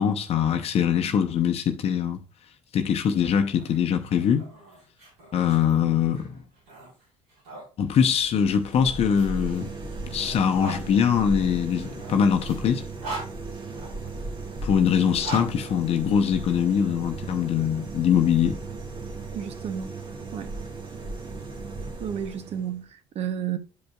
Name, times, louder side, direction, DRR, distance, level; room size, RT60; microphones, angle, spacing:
voice 1, 0.0-2.2 2.7-4.5 5.3-6.4 7.8-9.7 10.1-12.8 14.6-18.6, left 8 dB, 50° left, 0.7 m, -23 dB
sound 1, 3.0-7.7 8.6-10.8 11.7-14.1 14.9-16.5, right 2 dB, 85° right, 4.4 m, -41 dB
sound 2, 8.2-22.8, right 3 dB, 40° right, 1.6 m, -36 dB
voice 2, 19.3-20.0 20.3-20.5 22.0-23.6, right 9 dB, 55° right, 0.9 m, -32 dB
10.5 x 5.1 x 2.4 m
hypercardioid pair, 65°, 13 cm